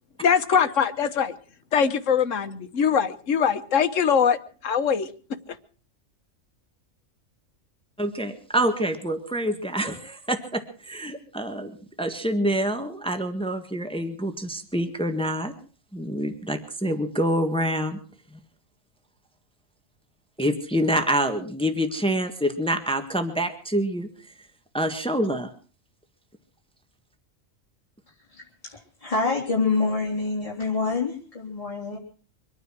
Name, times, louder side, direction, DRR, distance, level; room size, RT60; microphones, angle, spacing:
voice 1, 0.2-1.4 1.7-4.4 4.6-5.1, left 7 dB, 75° left, 11 dB, 1.4 m, -22 dB
voice 2, 8.0-11.7 12.0-15.5 15.9-18.0 20.4-24.1 24.7-25.5, right 1 dB, 5° left, 7 dB, 1.6 m, -26 dB
voice 3, 28.3-32.0, left 4 dB, 25° left, -6 dB, 3.7 m, -27 dB
24.5 x 9.4 x 6.2 m, 0.41 s
omnidirectional pair, 1.3 m